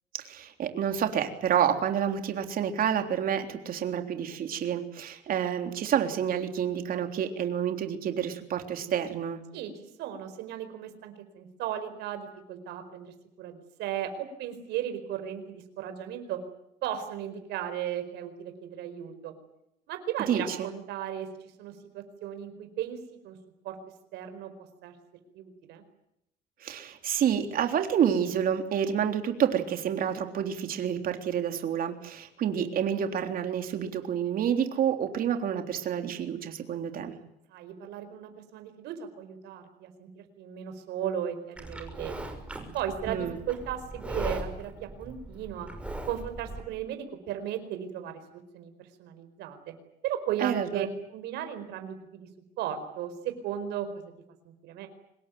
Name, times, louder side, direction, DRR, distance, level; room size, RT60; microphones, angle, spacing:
voice 1, 0.1-9.4 20.3-20.7 26.6-37.1 43.1-43.4 50.4-50.9, right 9 dB, 60° right, 6 dB, 3.6 m, -29 dB
voice 2, 9.5-16.4 16.8-19.3 19.9-21.3 21.6-23.0 23.2-23.4 23.6-23.8 24.1-24.5 24.8-24.9 25.3-25.8 37.5-42.2 42.7-45.7 46.1-49.7 50.0-50.9 51.1-52.3 52.6-53.9 54.4-54.9, right 10 dB, 85° right, 8 dB, 4.7 m, -36 dB
Livestock farm animals working animals, 41.6-46.6, right 1 dB, 5° right, 6.1 m, -39 dB
25.5 x 21.0 x 9.3 m, 0.80 s
cardioid pair, 110°, 17 cm